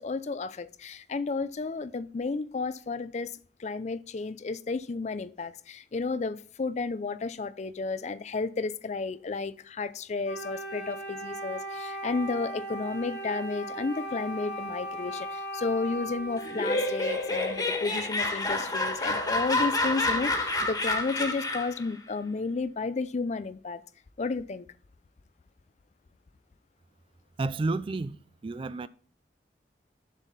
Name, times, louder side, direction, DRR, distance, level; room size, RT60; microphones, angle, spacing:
voice 1, 0.0-23.8 24.2-24.7, left 4 dB, 40° left, 0.4 m, -32 dB
Wind instrument woodwind instrument, 10.2-18.0, right 1 dB, 75° left, 2.2 m, -38 dB
Laughter, 16.4-21.8, left 2 dB, 20° left, 1.7 m, -28 dB
voice 2, 27.4-28.2 28.4-28.9, right 3 dB, 30° right, 0.3 m, -30 dB
7.4 x 7.2 x 4.0 m
head